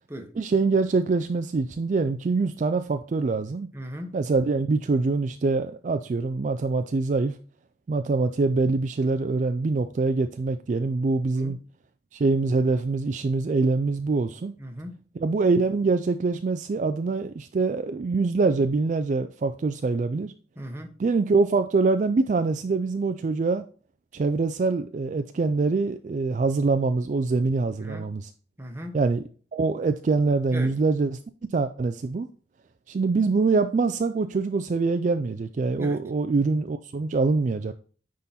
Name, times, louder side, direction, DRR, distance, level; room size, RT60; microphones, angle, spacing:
voice 1, 0.3-3.7 4.1-7.4 7.9-11.6 12.1-14.5 15.2-20.3 21.0-23.6 24.1-28.3 28.9-29.2 29.5-31.2 31.5-32.3 32.9-37.7, right 3 dB, 45° right, 0.3 m, -24 dB
voice 2, 3.7-4.1 11.4-11.6 14.6-15.0 20.6-20.9 27.8-28.1 28.6-29.0 30.5-30.7 35.8-36.0, equal, 15° right, 1.0 m, -37 dB
9.6 x 3.8 x 4.2 m
head